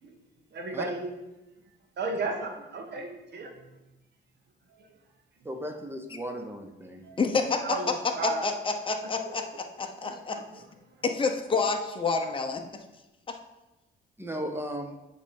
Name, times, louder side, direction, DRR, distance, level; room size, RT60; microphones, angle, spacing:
voice 1, 0.5-1.1 2.0-3.7 4.8-4.9 7.0-7.2 7.6-8.4 10.0-10.4, right 3 dB, 60° right, 2 dB, 1.4 m, -34 dB
voice 2, 5.4-7.0 14.2-14.9, equal, 10° right, 4 dB, 0.9 m, -36 dB
voice 3, 7.2-7.8 8.2-10.4 11.0-12.6 13.3-13.4, left 4 dB, 25° left, 4 dB, 0.8 m, -28 dB
8.2 x 3.4 x 5.3 m, 1.0 s
cardioid pair, 90°, 20 cm